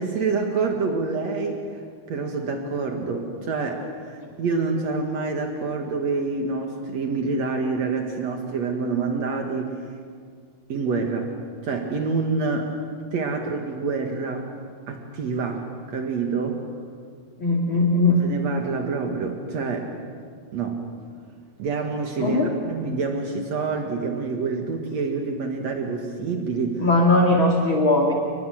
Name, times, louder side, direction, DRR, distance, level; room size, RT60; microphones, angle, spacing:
voice 1, 0.0-1.8 2.1-9.7 10.7-11.3 11.6-12.7 13.1-14.5 14.9-16.6 18.2-19.9 20.5-20.8 21.6-26.8, right 4 dB, 85° right, 3 dB, 1.5 m, -27 dB
voice 2, 17.4-18.2 22.2-22.5 26.8-28.1, left 2 dB, 40° left, 0 dB, 1.8 m, -19 dB
30.0 x 21.0 x 7.8 m, 2.1 s
omnidirectional pair, 6.0 m